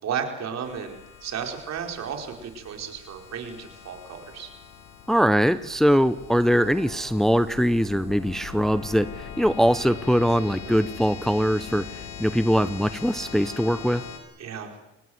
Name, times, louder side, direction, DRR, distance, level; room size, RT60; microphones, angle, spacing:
voice 1, 0.0-4.5 10.6-10.8 14.4-14.7, right 7 dB, 60° right, 4 dB, 4.7 m, -33 dB
sound 1, 0.6-14.2, left 7 dB, 85° left, 4.6 m, -41 dB
voice 2, 5.1-14.0, equal, ahead, 13 dB, 0.8 m, -22 dB
25.0 x 19.5 x 7.9 m, 0.96 s
cardioid pair, 85°, 30 cm